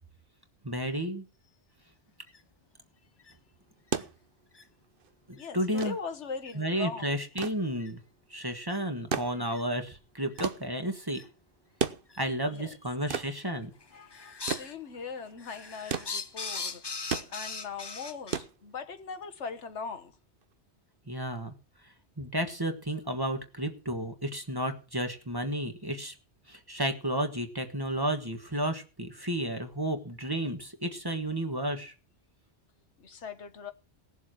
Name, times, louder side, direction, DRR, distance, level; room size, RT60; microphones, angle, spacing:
voice 1, 0.6-1.2 5.3-5.9 6.5-8.0 8.3-11.2 12.2-13.7 21.1-21.5 22.2-26.1 26.5-31.9, right 1 dB, 20° right, 1.5 m, -32 dB
sound 1, 2.3-2.4 3.2-3.3 4.0-4.1 4.5-4.6 5.3-5.5 6.5-6.6 7.1-7.3 7.8-7.9 8.7-8.8 9.5-9.6 10.3-10.4 11.1-11.2 12.1-12.2 13.1-13.5 13.8-14.7 15.1-18.4, left 4 dB, 30° left, 0.6 m, -39 dB
sound 2, 3.7-19.2 20.4-20.5, right 6 dB, 55° right, 1.0 m, -37 dB
voice 2, 5.3-7.2 9.3-9.5 12.5-12.8 13.9-20.2 33.0-33.7, left 5 dB, 85° left, 1.6 m, -41 dB
18.0 x 7.3 x 6.3 m
omnidirectional pair, 1.2 m